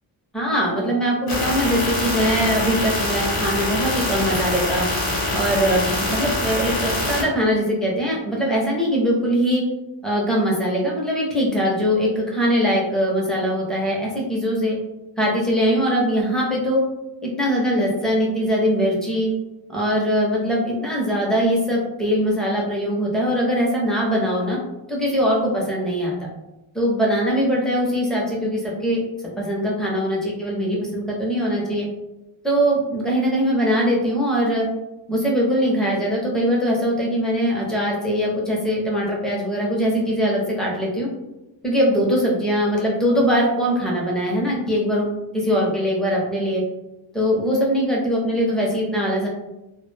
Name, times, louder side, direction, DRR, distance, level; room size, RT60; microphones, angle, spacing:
voice 1, 0.3-4.9 5.3-9.6 10.0-14.8 15.2-16.8 17.2-19.3 19.7-24.6 24.9-26.2 26.7-29.0 29.4-31.9 32.4-34.7 35.1-41.1 41.6-45.1 45.3-46.6 47.1-49.3, equal, ahead, -4 dB, 0.4 m, -21 dB
sound 1, 1.3-7.2, left 2 dB, 50° left, 0.7 m, -24 dB
2.2 x 2.1 x 3.1 m, 0.96 s
wide cardioid pair, 170°, 48 cm